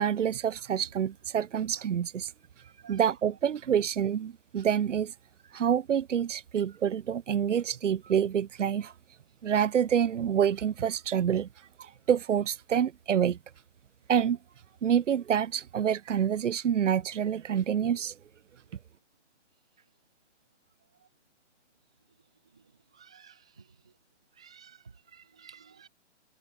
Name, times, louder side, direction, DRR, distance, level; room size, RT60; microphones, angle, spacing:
voice 1, 0.0-2.3 2.9-5.1 5.5-8.9 9.4-13.4 14.1-14.4 14.8-18.2, right 8 dB, 80° right, 0.9 m, -27 dB
voice 2, 23.0-23.3 24.4-24.8 25.1-25.9, right 7 dB, 5° right, 0.3 m, -53 dB
hypercardioid pair, 145°, 36 cm